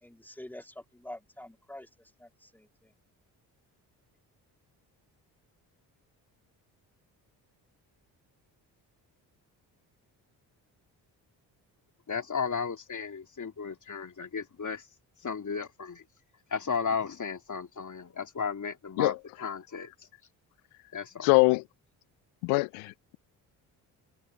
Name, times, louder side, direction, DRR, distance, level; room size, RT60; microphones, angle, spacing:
voice 1, 0.0-1.9 2.2-2.7, left 1 dB, 5° left, 2.4 m, -46 dB
voice 2, 12.1-14.8 15.2-16.0 16.5-19.9 20.9-21.3, left 6 dB, 35° left, 2.5 m, -34 dB
voice 3, 21.2-21.6 22.4-23.2, left 27 dB, 80° left, 0.8 m, -24 dB
hypercardioid pair, 45°, 49 cm